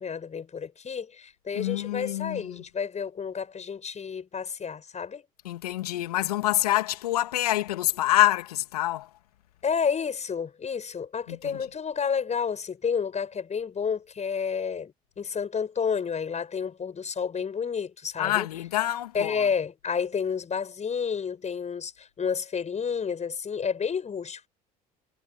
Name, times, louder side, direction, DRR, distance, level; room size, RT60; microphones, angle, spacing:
voice 1, 0.0-5.2 9.6-18.5 19.1-24.5, left 6 dB, 35° left, 7.1 m, -30 dB
voice 2, 1.5-2.6 5.4-9.1 11.3-11.6 18.2-19.4, left 15 dB, 85° left, 2.5 m, -26 dB
hypercardioid pair, 60°, 19 cm